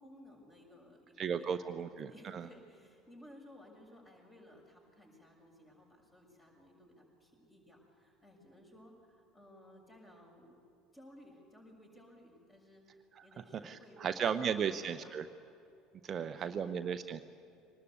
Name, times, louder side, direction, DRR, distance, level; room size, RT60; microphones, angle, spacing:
voice 1, 0.0-10.6 10.9-15.2 16.0-16.9, equal, 20° left, 1 dB, 6.8 m, -58 dB
voice 2, 1.2-2.5 13.2-13.3 13.6-15.2 16.0-17.2, right 7 dB, 35° right, 9 dB, 0.7 m, -35 dB
23.5 x 19.5 x 8.4 m, 2.7 s
figure-of-eight pair, 65°, 0 cm